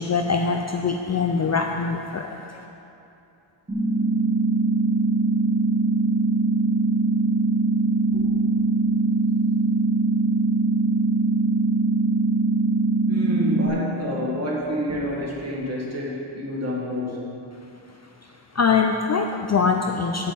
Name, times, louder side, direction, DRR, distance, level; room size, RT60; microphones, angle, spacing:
voice 1, 0.0-2.6 18.5-20.3, left 5 dB, 35° left, 3 dB, 0.4 m, -23 dB
sound 1, 3.7-13.7, right 3 dB, 15° right, 1.5 m, -21 dB
voice 2, 13.1-17.4, left 1 dB, 30° right, -3 dB, 1.6 m, -28 dB
8.4 x 5.4 x 7.6 m, 2.7 s
wide cardioid pair, 155°, 48 cm